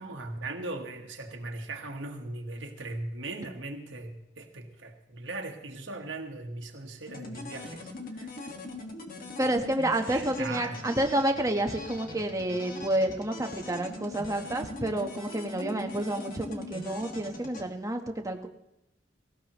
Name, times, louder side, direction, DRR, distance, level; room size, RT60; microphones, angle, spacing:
voice 1, 0.0-8.4 10.1-10.8, right 2 dB, 80° right, 3 dB, 1.5 m, -39 dB
sound 1, 7.1-17.6, left 2 dB, 50° left, 1.7 m, -41 dB
voice 2, 9.4-18.5, right 1 dB, 20° right, 4 dB, 1.2 m, -29 dB
18.0 x 16.5 x 3.1 m, 0.89 s
head